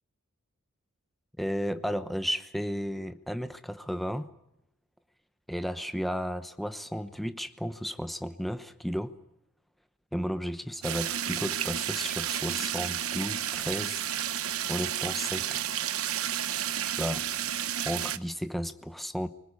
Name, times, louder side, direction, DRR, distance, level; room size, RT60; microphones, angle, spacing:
voice 1, 1.4-4.3 5.5-9.1 10.1-14.0 14.7-15.6 17.0-17.2 17.8-19.3, equal, ahead, 10 dB, 0.9 m, -33 dB
sound 1, 10.8-18.2, right 10 dB, 75° right, 1.0 m, -31 dB
25.0 x 20.5 x 8.4 m, 0.81 s
head